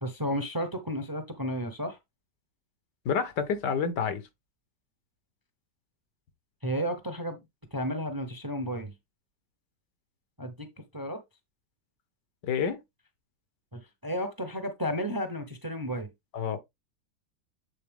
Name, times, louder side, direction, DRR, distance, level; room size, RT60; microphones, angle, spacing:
voice 1, 0.0-2.0 6.6-7.4 7.7-8.9 10.4-10.7 10.9-11.2 13.7-16.1, equal, 15° right, 0.8 m, -32 dB
voice 2, 3.0-4.2 12.4-12.8 16.3-16.6, left 6 dB, 75° left, 1.6 m, -28 dB
8.4 x 4.0 x 3.5 m
omnidirectional pair, 1.9 m